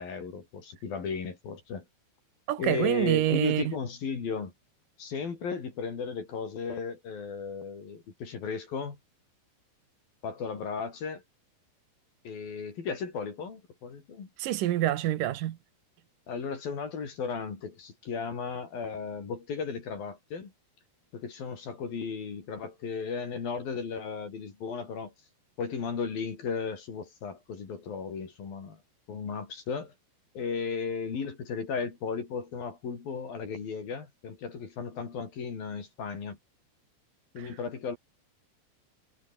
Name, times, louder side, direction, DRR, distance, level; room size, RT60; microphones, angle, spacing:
voice 1, 0.0-1.9 2.6-4.5 5.0-9.0 10.2-11.2 12.2-14.3 16.3-20.5 21.1-25.1 25.6-28.8 29.1-29.9 30.3-36.4 37.3-38.0, left 5 dB, 55° left, 5.8 m, -35 dB
voice 2, 2.5-3.6 14.4-15.6, right 13 dB, 65° right, 2.4 m, -26 dB
omnidirectional pair, 5.0 m